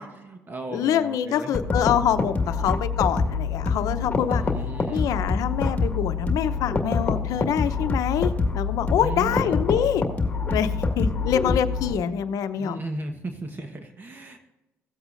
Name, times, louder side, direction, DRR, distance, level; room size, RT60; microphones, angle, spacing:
voice 1, 0.0-1.5 4.3-5.0 9.0-9.6 11.9-12.1 12.6-14.4, right 2 dB, 35° right, 5 dB, 1.2 m, -36 dB
voice 2, 0.7-4.4 4.9-10.0 10.5-12.8, left 9 dB, 75° left, 11 dB, 0.7 m, -25 dB
sound 1, 1.5-11.9, left 4 dB, 25° left, 1.9 m, -26 dB
16.5 x 8.0 x 2.6 m, 1.0 s
cardioid pair, 85°, 6 cm